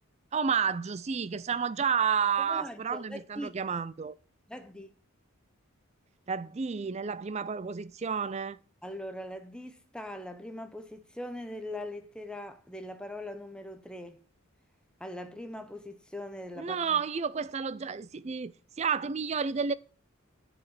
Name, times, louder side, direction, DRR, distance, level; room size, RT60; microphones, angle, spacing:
voice 1, 0.3-4.2 6.3-8.6 16.6-19.7, right 6 dB, 30° right, 0.4 m, -31 dB
voice 2, 2.4-3.6 4.5-4.9 8.8-14.2 15.0-17.0, left 1 dB, 5° left, 0.7 m, -41 dB
7.6 x 4.9 x 7.2 m
head